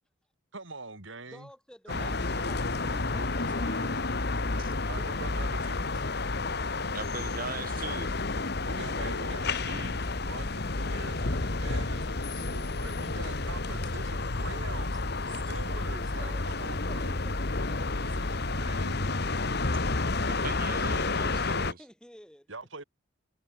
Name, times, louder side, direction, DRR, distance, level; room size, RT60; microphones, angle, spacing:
voice 1, 0.5-1.5 1.9-4.2 4.8-6.0 8.6-17.2 18.0-19.4 20.8-21.8 22.5-22.8, right 3 dB, 65° right, 4.1 m, -45 dB
voice 2, 1.3-3.8 21.7-22.5, equal, 5° left, 4.3 m, -52 dB
sound 1, 1.9-21.7, left 3 dB, 50° left, 1.4 m, -30 dB
voice 3, 6.9-8.2 20.3-21.8, right 4 dB, 45° right, 4.3 m, -40 dB
head